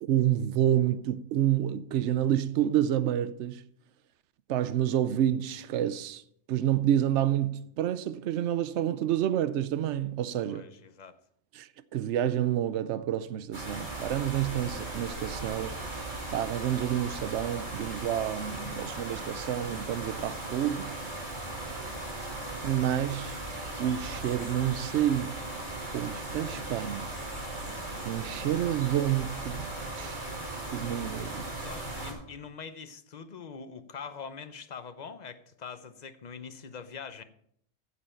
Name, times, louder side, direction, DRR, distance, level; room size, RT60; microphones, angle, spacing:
voice 1, 0.0-3.6 4.5-6.2 6.5-10.7 11.5-15.8 16.3-20.9 22.6-23.4 23.8-25.4 25.9-27.1 28.0-29.7 30.0-30.3 30.7-31.6, right 11 dB, 75° right, 0.9 m, -29 dB
voice 2, 10.5-11.2 31.6-37.2, left 6 dB, 40° left, 0.7 m, -43 dB
sound 1, 13.5-32.1, right 2 dB, 90° right, 4.7 m, -37 dB
15.5 x 7.1 x 4.4 m
omnidirectional pair, 1.3 m